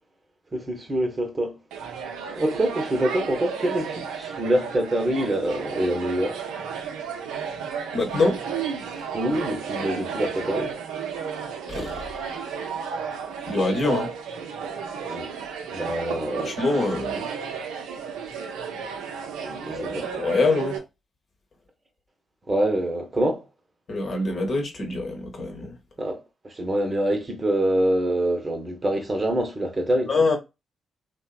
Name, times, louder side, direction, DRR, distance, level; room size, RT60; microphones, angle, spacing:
voice 1, 0.5-1.6 2.4-6.4 9.1-10.8 15.0-15.3 15.7-16.6 19.4-20.1 22.5-23.5 26.0-30.1, right 1 dB, 35° right, 0.8 m, -25 dB
sound 1, 1.7-20.8, right 6 dB, 75° right, 0.4 m, -33 dB
voice 2, 7.9-8.4 11.7-12.5 13.5-14.1 16.4-17.3 19.7-20.8 23.9-25.7 30.1-30.4, left 3 dB, 55° left, 0.9 m, -25 dB
2.7 x 2.1 x 2.3 m
hypercardioid pair, 40°, 0 cm